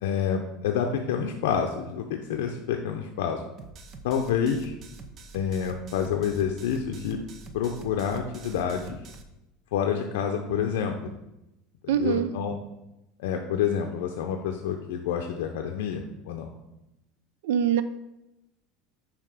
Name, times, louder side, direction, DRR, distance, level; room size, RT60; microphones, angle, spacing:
voice 1, 0.0-3.4 4.0-4.7 5.3-7.2 7.5-9.0 9.7-11.1 11.8-12.5 13.2-16.5, left 7 dB, 85° left, 4 dB, 0.6 m, -28 dB
sound 1, 3.6-9.2, right 3 dB, 35° right, 0.6 m, -45 dB
voice 2, 11.9-12.3 17.4-17.8, right 8 dB, 85° right, 13 dB, 0.5 m, -23 dB
5.7 x 4.9 x 4.8 m, 0.93 s
supercardioid pair, 145°, 0 cm